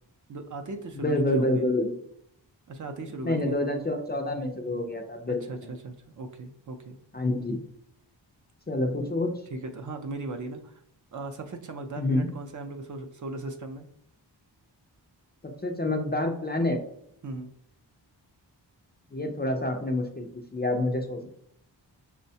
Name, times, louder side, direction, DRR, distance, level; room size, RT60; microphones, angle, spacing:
voice 1, 0.3-1.7 2.7-3.7 5.5-7.0 9.5-10.8 11.1-13.9 17.2-17.5, right 2 dB, 45° right, 4 dB, 0.4 m, -38 dB
voice 2, 0.9-1.9 3.2-5.7 7.1-7.6 8.7-9.3 12.0-12.3 15.4-16.8 19.1-21.3, left 1 dB, 25° left, 3 dB, 0.4 m, -28 dB
6.1 x 2.1 x 2.7 m, 0.70 s
wide cardioid pair, 130°, 44 cm